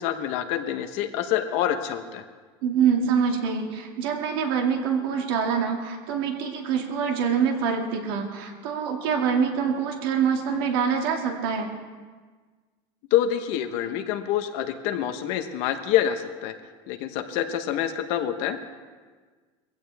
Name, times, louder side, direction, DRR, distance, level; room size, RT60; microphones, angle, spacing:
voice 1, 0.0-2.2 13.1-16.5 16.9-18.8, left 10 dB, 45° left, 7 dB, 1.0 m, -26 dB
voice 2, 2.6-11.7, right 6 dB, 60° right, 2 dB, 2.3 m, -25 dB
22.0 x 16.0 x 3.5 m, 1.5 s
cardioid pair, 180°, 14 cm